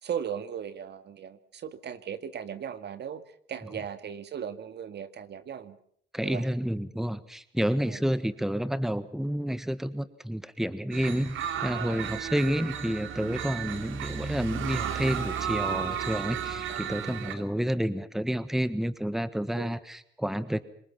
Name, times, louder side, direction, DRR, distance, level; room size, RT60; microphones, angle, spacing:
voice 1, 0.0-3.2 3.5-5.8 6.2-6.5 7.9-8.0 11.7-12.1 16.7-16.8 17.4-17.5 19.6-19.8, right 8 dB, 60° right, 12 dB, 2.0 m, -37 dB
voice 2, 6.1-20.6, equal, ahead, 14 dB, 1.4 m, -30 dB
sound 1, 10.9-17.3, right 8 dB, 85° right, 2.6 m, -33 dB
26.0 x 22.0 x 5.8 m, 0.65 s
cardioid pair, 90°, 20 cm